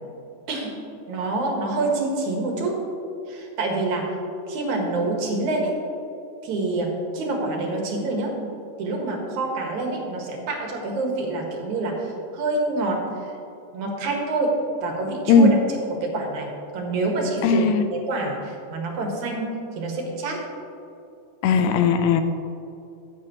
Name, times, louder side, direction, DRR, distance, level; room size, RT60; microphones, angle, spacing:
voice 1, 0.5-0.8 1.1-2.8 3.3-4.1 4.5-5.8 6.4-8.4 8.8-13.3 13.7-20.4, right 2 dB, 75° right, 0 dB, 2.9 m, -27 dB
voice 2, 17.4-17.8 21.4-22.2, left 5 dB, 80° left, 9 dB, 2.0 m, -17 dB
14.0 x 9.2 x 3.0 m, 2.8 s
omnidirectional pair, 3.4 m